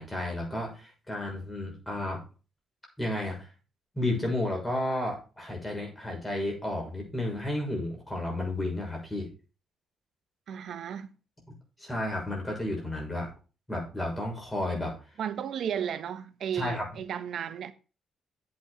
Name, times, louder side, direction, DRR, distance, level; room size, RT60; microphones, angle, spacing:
voice 1, 0.0-2.2 3.0-3.5 3.9-9.3 11.8-13.3 13.7-14.9 16.5-16.8, left 1 dB, 10° left, 6.4 m, -32 dB
voice 2, 10.5-11.1 15.2-17.7, right 8 dB, 65° right, 1.1 m, -34 dB
8.6 x 8.0 x 5.1 m
cardioid pair, 90°, 0 cm